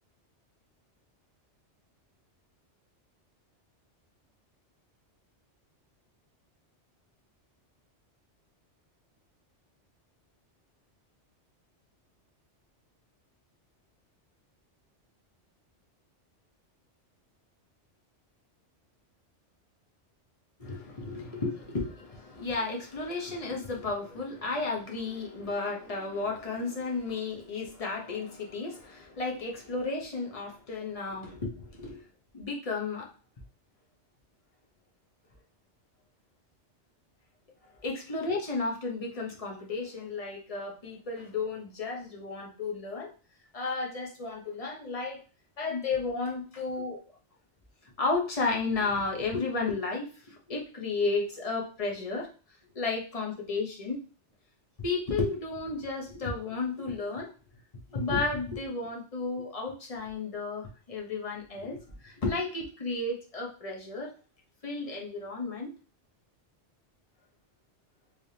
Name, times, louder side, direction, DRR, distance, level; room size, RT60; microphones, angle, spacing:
voice 1, 20.6-32.0 32.3-33.1 37.8-43.1 43.5-45.2 45.6-47.0 48.0-52.3 52.7-54.0 54.8-57.3 57.9-64.1 64.6-65.7, left 3 dB, 35° left, -1 dB, 0.8 m, -33 dB
3.3 x 3.2 x 2.7 m, 0.36 s
omnidirectional pair, 1.2 m